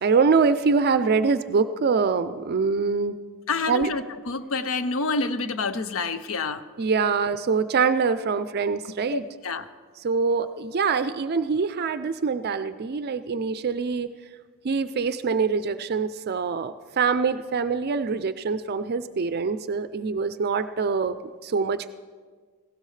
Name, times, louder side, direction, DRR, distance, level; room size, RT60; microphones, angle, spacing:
voice 1, 0.0-3.1 3.7-3.9 6.8-9.3 10.0-14.1 14.6-21.2 21.4-21.9, right 5 dB, 45° right, 12 dB, 0.4 m, -24 dB
voice 2, 3.5-6.6 9.1-9.6, left 3 dB, 65° left, 11 dB, 0.7 m, -28 dB
18.5 x 16.5 x 3.3 m, 1.5 s
head